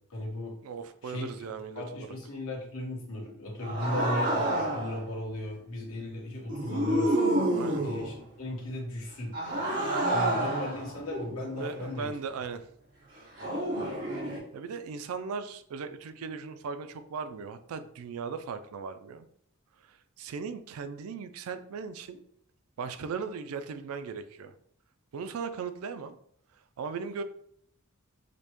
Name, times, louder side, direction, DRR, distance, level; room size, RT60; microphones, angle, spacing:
voice 1, 0.1-0.6 1.0-1.3 1.7-7.2 7.8-9.3 10.0-12.1, left 1 dB, 75° left, -3 dB, 1.3 m, -36 dB
voice 2, 0.6-2.1 7.5-7.8 11.6-12.7 14.5-19.2 19.8-22.2 22.8-24.5 25.1-26.2 26.8-27.2, right 5 dB, 75° right, 10 dB, 0.3 m, -38 dB
sound 1, 3.6-5.0 6.5-8.2 9.3-12.0 13.4-14.4, right 1 dB, 55° right, 1.4 m, -29 dB
5.1 x 2.2 x 2.9 m, 0.67 s
head